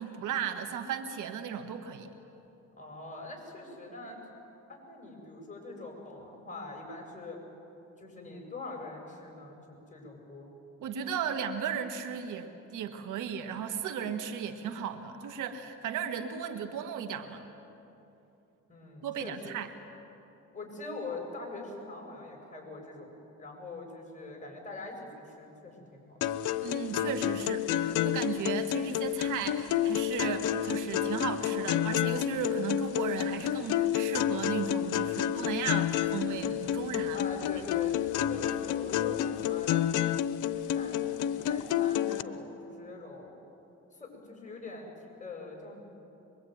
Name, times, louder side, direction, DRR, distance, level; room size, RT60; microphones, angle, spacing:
voice 1, 0.0-2.1 10.8-17.5 19.0-19.7 26.6-37.3, right 7 dB, 90° right, 7 dB, 1.8 m, -35 dB
voice 2, 2.8-4.2 4.7-7.4 8.0-10.5 18.7-19.5 20.5-23.1 23.4-26.2 37.1-39.8 40.5-43.4 43.9-44.9 45.2-45.8, left 3 dB, 25° left, 1 dB, 7.9 m, -43 dB
sound 1, 26.2-42.2, left 11 dB, 85° left, 0.8 m, -30 dB
24.5 x 23.0 x 9.5 m, 2.9 s
cardioid pair, 90°, 30 cm